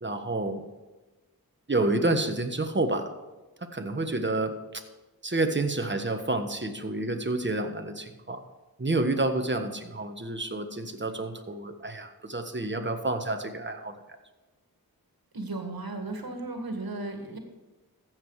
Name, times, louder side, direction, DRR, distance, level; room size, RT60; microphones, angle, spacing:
voice 1, 0.0-0.6 1.7-3.1 3.7-4.8 5.2-8.4 8.8-13.9, right 2 dB, 30° right, 7 dB, 1.4 m, -29 dB
voice 2, 15.3-17.4, right 2 dB, 75° right, 5 dB, 2.0 m, -35 dB
14.5 x 7.7 x 4.9 m, 1.2 s
wide cardioid pair, 50°, 36 cm